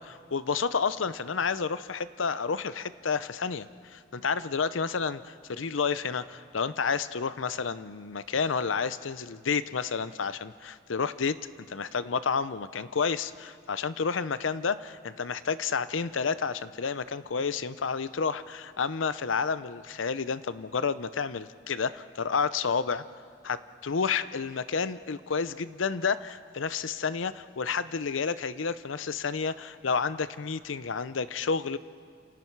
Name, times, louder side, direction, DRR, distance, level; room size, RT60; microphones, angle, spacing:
voice 1, 0.0-11.4 11.7-23.0 23.4-23.6 23.8-31.8, left 5 dB, 80° left, 14 dB, 0.7 m, -30 dB
29.5 x 28.0 x 4.7 m, 2.1 s
head